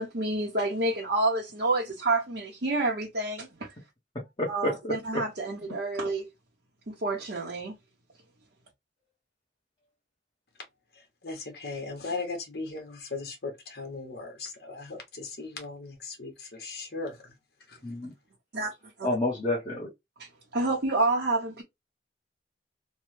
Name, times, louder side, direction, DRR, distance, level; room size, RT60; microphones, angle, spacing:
voice 1, 0.0-3.7 4.5-6.3 6.9-7.8 18.5-18.7 19.0-19.1 20.5-21.6, right 2 dB, 70° right, 0.9 m, -28 dB
voice 2, 4.1-5.2 17.8-18.1 19.0-19.9, left 1 dB, 25° left, 1.0 m, -30 dB
voice 3, 10.9-17.4 17.7-17.8, left 3 dB, 65° left, 1.1 m, -38 dB
3.2 x 2.2 x 3.1 m
head